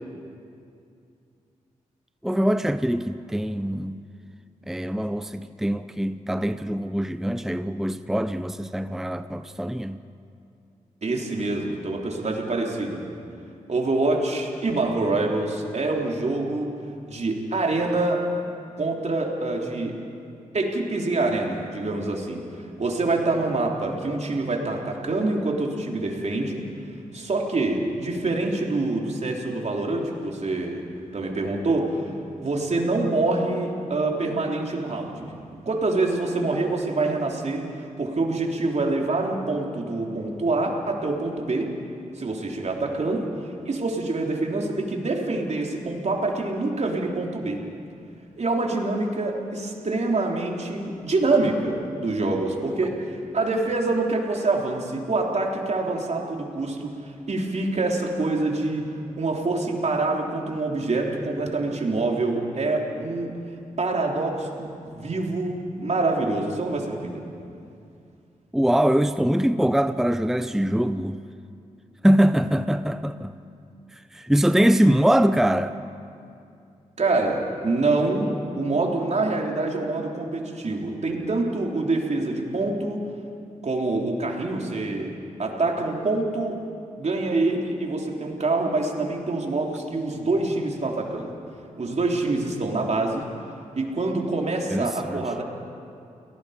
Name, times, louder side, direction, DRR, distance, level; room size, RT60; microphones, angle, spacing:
voice 1, 2.2-4.0 4.7-10.0 68.5-71.2 72.0-73.3 73.9-75.8 94.7-95.2, equal, 5° right, 11 dB, 0.7 m, -23 dB
voice 2, 11.0-13.1 13.7-16.7 17.1-18.2 18.8-20.0 20.5-22.4 22.8-26.7 27.1-30.9 31.1-32.1 32.4-35.4 35.7-37.6 38.0-41.7 42.2-43.2 43.7-47.6 48.4-58.9 59.2-63.3 63.8-67.2 77.0-83.0 83.6-85.1 85.4-86.6 87.0-91.3 91.8-93.3 93.7-95.4, right 2 dB, 50° right, 0 dB, 3.7 m, -26 dB
30.0 x 18.5 x 5.2 m, 2.5 s
supercardioid pair, 45°, 15 cm